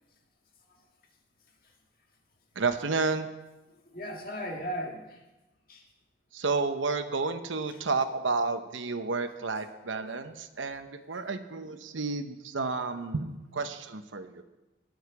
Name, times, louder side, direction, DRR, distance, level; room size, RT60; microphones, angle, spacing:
voice 1, 2.6-3.3 6.3-14.4, right 4 dB, 85° right, 9 dB, 0.8 m, -31 dB
voice 2, 3.7-5.2 5.7-5.9 7.7-7.8, equal, 50° left, 1 dB, 1.8 m, -38 dB
19.0 x 6.5 x 4.9 m, 1.1 s
head